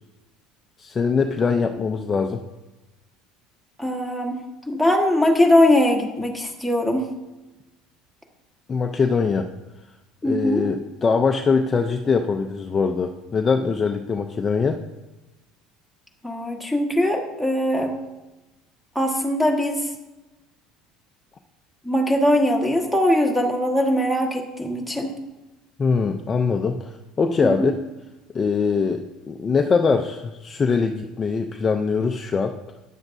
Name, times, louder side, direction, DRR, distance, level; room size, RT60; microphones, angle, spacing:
voice 1, 0.8-2.4 8.7-9.5 10.2-14.8 25.8-27.8 28.3-32.6, left 5 dB, 20° left, 4 dB, 0.5 m, -22 dB
voice 2, 3.8-4.4 4.7-7.1 10.2-10.7 16.2-18.0 18.9-19.9 21.8-25.1 27.4-27.7, left 1 dB, ahead, 2 dB, 1.4 m, -21 dB
13.5 x 9.9 x 2.7 m, 1.0 s
cardioid pair, 160°, 0 cm